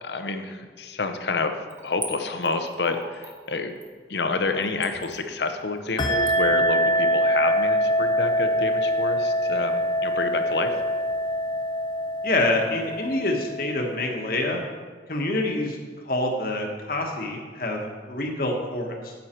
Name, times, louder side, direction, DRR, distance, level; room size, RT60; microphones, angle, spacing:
voice 1, 0.0-1.5 1.8-3.8 4.1-10.7, left 3 dB, 65° left, 7 dB, 0.8 m, -28 dB
Splash splatter / Trickle dribble, 1.7-8.1 8.4-8.5, right 3 dB, 15° right, 1.0 m, -41 dB
sound 1, 6.0-14.1, equal, 25° left, 0.6 m, -24 dB
voice 2, 12.2-14.6 15.1-15.8 16.0-19.1, left 2 dB, 50° left, 2 dB, 1.3 m, -26 dB
9.5 x 8.0 x 4.4 m, 1.5 s
head